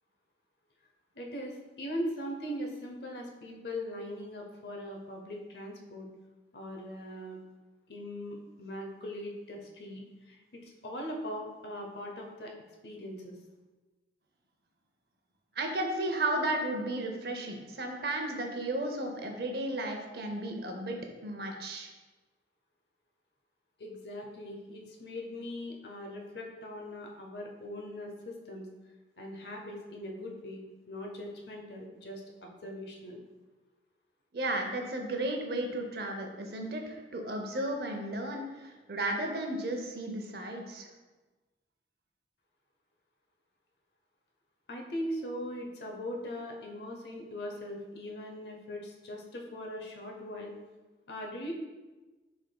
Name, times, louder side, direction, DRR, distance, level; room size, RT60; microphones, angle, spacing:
voice 1, 1.1-6.1 6.5-7.4 7.9-12.5 12.8-13.4 23.8-28.7 29.2-33.2 44.7-50.5 51.1-51.5, equal, 70° left, 1 dB, 0.7 m, -40 dB
voice 2, 15.6-21.9 34.3-40.9, right 1 dB, 60° right, 3 dB, 0.6 m, -34 dB
6.4 x 3.5 x 2.2 m, 1.2 s
head